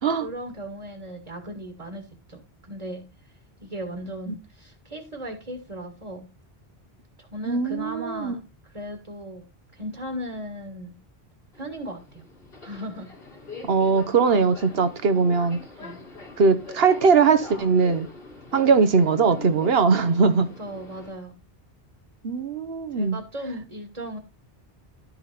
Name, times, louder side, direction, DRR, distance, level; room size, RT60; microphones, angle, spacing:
voice 1, 0.2-2.4 2.7-3.0 3.6-6.3 7.2-8.4 8.7-9.5 9.8-10.9 11.5-12.2 12.6-13.1 15.8-16.0 20.6-21.3 22.9-24.2, equal, 35° right, 1.7 m, -36 dB
voice 2, 7.5-8.4 13.6-15.6 16.4-18.1 18.5-20.5 22.2-23.2, right 5 dB, 75° right, 1.2 m, -20 dB
Subway metro underground, 11.5-21.1, left 3 dB, 70° left, 2.9 m, -42 dB
12.0 x 5.7 x 4.2 m
omnidirectional pair, 1.0 m